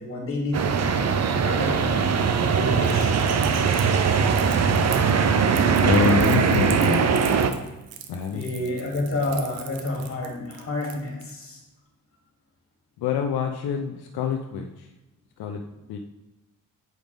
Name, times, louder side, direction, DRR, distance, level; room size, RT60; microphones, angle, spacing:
voice 1, 0.0-1.9 2.4-3.1 8.3-11.6, left 2 dB, 35° left, -2 dB, 2.6 m, -30 dB
sound 1, 0.5-7.5, right 6 dB, 45° right, 0.7 m, -21 dB
Crackle, 2.8-11.3, right 9 dB, 75° right, 0.8 m, -41 dB
voice 2, 5.8-7.1 8.1-8.7 13.0-14.9 15.4-15.6 15.9-16.0, left 6 dB, 85° left, 3 dB, 0.7 m, -26 dB
8.0 x 5.2 x 3.5 m, 1.0 s
cardioid pair, 110°, 37 cm